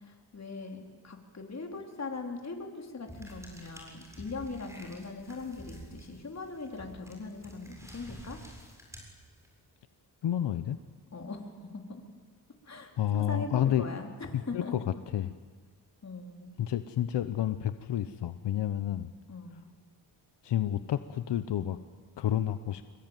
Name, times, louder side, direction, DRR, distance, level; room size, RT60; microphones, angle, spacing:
voice 1, 0.0-8.4 11.1-12.0 12.6-14.7 16.0-16.6 19.3-19.6, left 3 dB, 40° left, 2 dB, 4.3 m, -40 dB
sound 1, 3.1-9.7, equal, 5° right, 7.3 m, -50 dB
voice 2, 10.2-10.8 13.0-13.8 14.3-14.8 15.1-15.3 16.6-19.1 20.4-21.8 22.2-22.8, left 11 dB, 85° left, 11 dB, 1.0 m, -30 dB
26.5 x 22.0 x 9.2 m, 1.5 s
cardioid pair, 95°, 41 cm